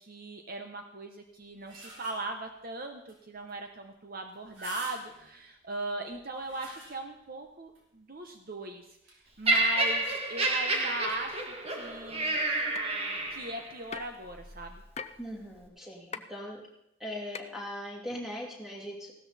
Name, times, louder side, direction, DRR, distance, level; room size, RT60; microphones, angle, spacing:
voice 1, 0.0-12.4 13.3-14.8, right 2 dB, 45° right, 5 dB, 1.0 m, -39 dB
sound 1, 1.3-2.5 3.1-3.2 3.5-3.6 4.3-5.4 6.1-7.3 7.7-7.8 8.9-9.1, equal, 65° right, 4.3 m, -46 dB
Laughter, 9.5-13.7 14.5-14.7, right 2 dB, 30° right, 1.6 m, -29 dB
sound 2, 12.7-12.8 13.9-14.2 15.0-15.1 16.1-16.2 17.3-17.4, left 6 dB, 30° left, 0.5 m, -38 dB
voice 2, 15.2-16.6 17.0-19.1, equal, ahead, -2 dB, 2.7 m, -40 dB
16.0 x 13.0 x 4.3 m, 0.80 s
head